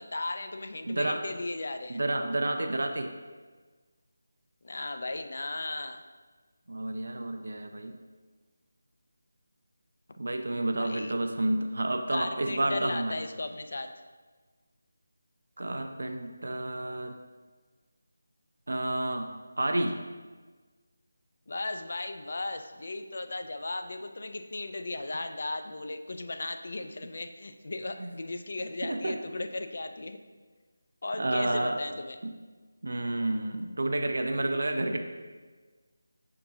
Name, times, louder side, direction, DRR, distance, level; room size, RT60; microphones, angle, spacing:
voice 1, 0.0-2.0 4.6-6.0 10.1-10.2 10.8-11.1 12.1-13.9 21.5-30.2 31.0-32.2, left 2 dB, 60° left, 8 dB, 0.3 m, -36 dB
voice 2, 0.8-1.2 1.9-3.1 6.7-8.0 10.2-13.2 15.6-17.2 18.7-19.3 19.6-20.0 28.0-28.1 28.8-29.2 31.2-31.8 32.2-32.3 32.8-35.0, right 1 dB, 75° right, 5 dB, 0.4 m, -30 dB
4.7 x 3.6 x 2.6 m, 1.4 s
figure-of-eight pair, 170°, 0 cm